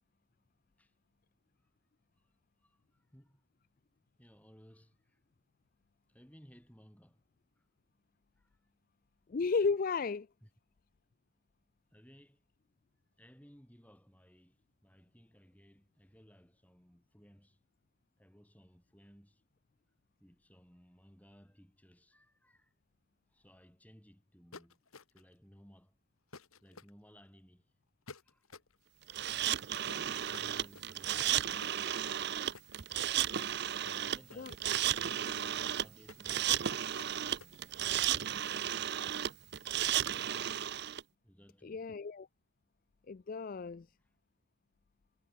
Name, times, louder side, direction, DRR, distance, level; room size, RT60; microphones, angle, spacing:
voice 1, 2.6-3.4 4.2-5.2 6.1-7.2 7.6-7.7 8.4-8.7 10.4-10.5 11.9-12.4 13.2-17.6 18.2-19.4 20.2-22.7 23.3-26.0 26.6-27.7 28.2-28.6 29.7-31.6 33.8-39.1 41.2-41.9 43.2-43.3 43.7-44.1, equal, 5° left, 4.0 m, -61 dB
voice 2, 9.3-10.3 34.3-34.5 41.6-42.3 43.1-43.9, left 4 dB, 40° left, 0.4 m, -33 dB
sound 1, 24.5-25.3 26.3-26.9 28.1-28.8 29.8-37.6, left 3 dB, 80° left, 2.7 m, -53 dB
sound 2, 29.1-41.0, right 10 dB, 50° right, 0.6 m, -34 dB
head